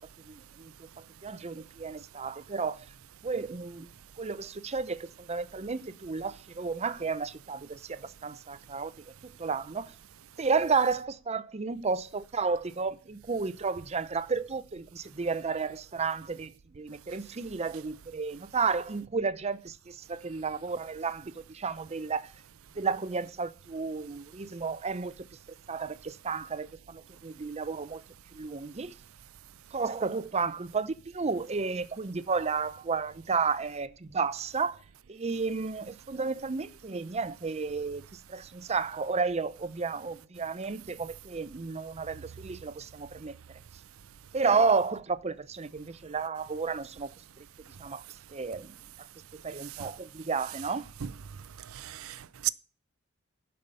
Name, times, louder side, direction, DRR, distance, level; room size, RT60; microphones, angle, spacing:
voice 1, 0.3-0.7 1.2-2.9 3.2-3.9 4.2-8.9 9.2-9.9 10.4-22.3 22.8-28.0 28.3-28.9 29.7-34.8 35.1-43.3 44.3-47.1 47.4-48.0 48.3-49.1 49.3-50.9, right 4 dB, 30° right, 0.6 m, -32 dB
voice 2, 51.7-52.5, right 13 dB, 75° right, 0.5 m, -34 dB
12.0 x 5.6 x 6.7 m
head